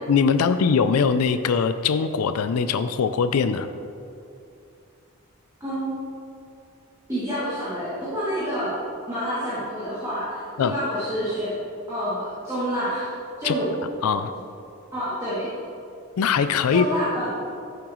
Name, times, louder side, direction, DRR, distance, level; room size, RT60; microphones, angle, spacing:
voice 1, 0.1-3.7 10.6-10.7 13.4-13.6 14.0-14.3 16.2-16.9, left 6 dB, 85° left, 11 dB, 0.4 m, -21 dB
voice 2, 5.6-5.9 7.1-8.8 9.1-11.5 11.9-13.7 14.9-15.5 16.7-17.3, equal, 15° right, -12 dB, 2.5 m, -28 dB
11.5 x 8.7 x 3.1 m, 2.6 s
head